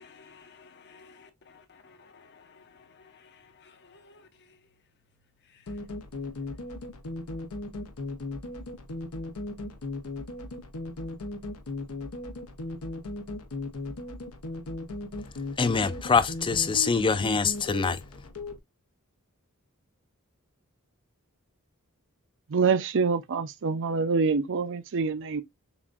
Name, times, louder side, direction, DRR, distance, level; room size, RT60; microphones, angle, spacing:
voice 1, 0.0-4.6 5.5-5.7, left 5 dB, 55° left, 0.8 m, -55 dB
sound 1, 5.7-18.6, left 2 dB, 80° left, 0.8 m, -37 dB
voice 2, 15.6-18.0, left 5 dB, 25° left, 0.4 m, -24 dB
voice 3, 22.5-25.4, right 5 dB, 60° right, 0.5 m, -26 dB
7.0 x 2.6 x 2.4 m
head